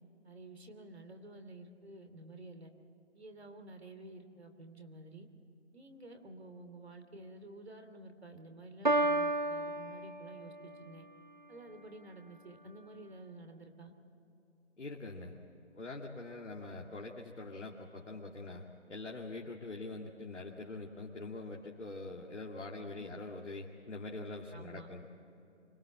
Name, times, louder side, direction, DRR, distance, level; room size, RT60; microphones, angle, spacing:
voice 1, 0.2-2.7 3.1-5.3 5.7-11.1 11.5-13.9 23.1-23.2 24.5-24.9, right 2 dB, 60° right, 7 dB, 2.8 m, -51 dB
Piano, 8.8-10.8, right 2 dB, 40° right, 0.4 m, -32 dB
voice 2, 14.8-15.3 15.7-25.1, left 2 dB, 75° left, -1 dB, 2.4 m, -44 dB
25.0 x 20.5 x 7.6 m, 2.8 s
figure-of-eight pair, 170°, 36 cm